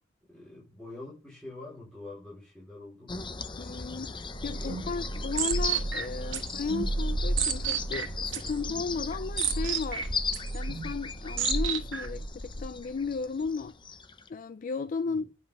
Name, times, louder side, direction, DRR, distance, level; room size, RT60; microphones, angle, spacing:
voice 1, 0.3-3.2 4.6-5.0 10.4-10.7 15.0-15.2, left 2 dB, 5° left, 4.3 m, -46 dB
sound 1, 3.1-14.3, left 4 dB, 25° left, 0.8 m, -37 dB
voice 2, 3.6-10.1 10.5-13.8 14.3-15.3, left 4 dB, 45° left, 0.4 m, -34 dB
sound 2, 4.3-12.3, right 5 dB, 75° right, 1.5 m, -32 dB
9.1 x 5.6 x 5.4 m
head